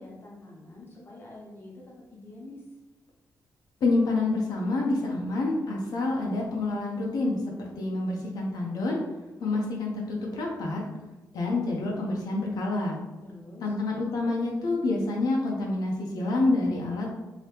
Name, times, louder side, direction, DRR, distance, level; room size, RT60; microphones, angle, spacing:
voice 1, 0.0-1.7 2.1-2.6 13.2-13.7, left 2 dB, 30° left, -3 dB, 0.8 m, -46 dB
voice 2, 3.8-7.4 7.8-9.0 9.4-10.8 11.3-13.0 13.6-17.1, left 2 dB, 75° left, -1 dB, 0.7 m, -27 dB
2.9 x 2.8 x 3.3 m, 1.1 s
wide cardioid pair, 170°, 7 cm